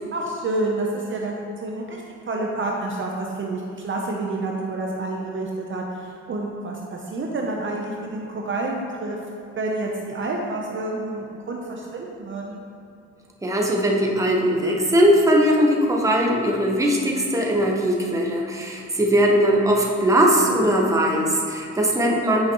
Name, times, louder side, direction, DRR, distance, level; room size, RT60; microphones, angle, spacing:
voice 1, 0.1-9.2 9.6-12.6, right 2 dB, 40° right, -1 dB, 0.8 m, -29 dB
voice 2, 13.4-22.5, equal, 10° right, -1 dB, 1.0 m, -20 dB
8.6 x 5.0 x 3.0 m, 2.5 s
cardioid pair, 90°, 30 cm